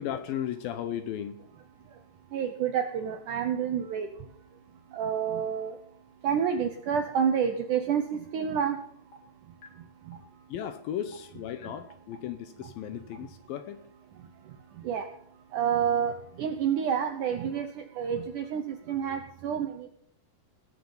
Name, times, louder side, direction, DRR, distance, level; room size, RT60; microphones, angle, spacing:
voice 1, 0.0-1.4 10.5-13.8, left 10 dB, 75° left, 10 dB, 2.2 m, -35 dB
voice 2, 2.3-5.8 6.2-9.1 9.4-10.5 14.1-19.9, right 8 dB, 75° right, 7 dB, 1.8 m, -30 dB
sound 1, 8.6-8.7 9.1-9.2 9.6-9.7 10.1-10.2 10.6-10.7 11.1-11.2 11.6-11.7 12.1-12.2 12.6-12.7 13.1-13.2, equal, 35° left, 1.8 m, -49 dB
19.5 x 7.4 x 5.4 m, 0.69 s
omnidirectional pair, 4.8 m